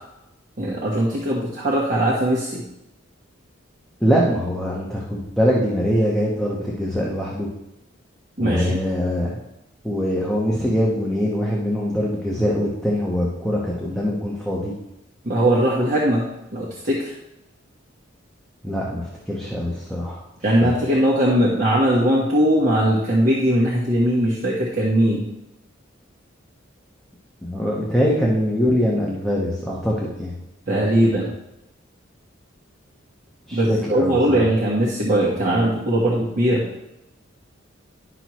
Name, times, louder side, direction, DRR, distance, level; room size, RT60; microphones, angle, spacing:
voice 1, 0.6-2.6 8.4-8.8 15.2-16.2 16.5-17.1 20.4-25.2 30.7-31.3 33.5-36.7, right 1 dB, 45° right, -5 dB, 1.3 m, -20 dB
voice 2, 4.0-7.5 8.4-9.3 9.8-14.7 18.6-20.2 20.6-20.7 27.4-30.3 33.5-34.5, equal, 5° left, -5 dB, 1.1 m, -23 dB
11.0 x 6.1 x 3.1 m, 0.88 s
head